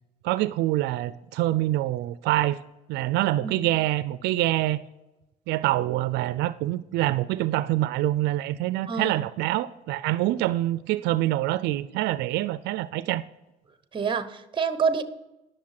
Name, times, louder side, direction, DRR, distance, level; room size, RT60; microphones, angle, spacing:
voice 1, 0.2-2.6 2.9-4.8 5.5-13.2, right 15 dB, 85° right, 0.4 m, -25 dB
voice 2, 8.9-9.2 13.9-15.0, right 5 dB, 30° right, 0.9 m, -27 dB
11.0 x 6.5 x 5.8 m
cardioid pair, 110°, 17 cm